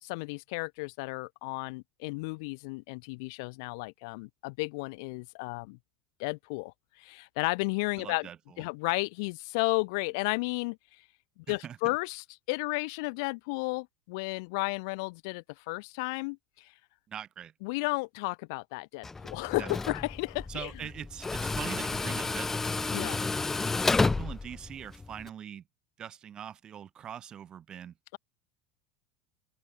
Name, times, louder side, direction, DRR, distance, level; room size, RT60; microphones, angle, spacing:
voice 1, 0.0-5.8 6.2-8.3 8.6-10.8 11.5-16.7 17.6-20.7 22.9-23.2, left 28 dB, 65° left, 3.9 m, -33 dB
voice 2, 8.0-8.6 11.5-11.9 17.1-17.5 19.6-19.7 20.5-23.2 23.9-25.6 26.0-27.9, right 9 dB, 35° right, 5.5 m, -42 dB
Tools, 19.0-25.3, left 3 dB, 15° left, 4.5 m, -31 dB
open air
hypercardioid pair, 75°, 2 cm